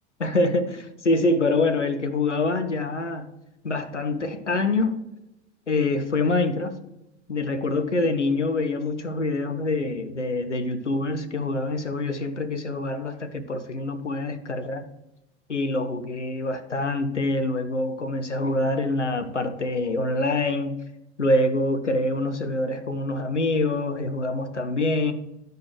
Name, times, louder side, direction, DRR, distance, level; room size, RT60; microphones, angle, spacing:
voice 1, 0.2-3.3 3.6-5.0 5.7-6.8 7.3-14.9 15.5-20.7 21.2-25.1, left 2 dB, 90° left, 0.7 m, -25 dB
12.0 x 4.6 x 3.2 m
figure-of-eight pair, 85°, 35 cm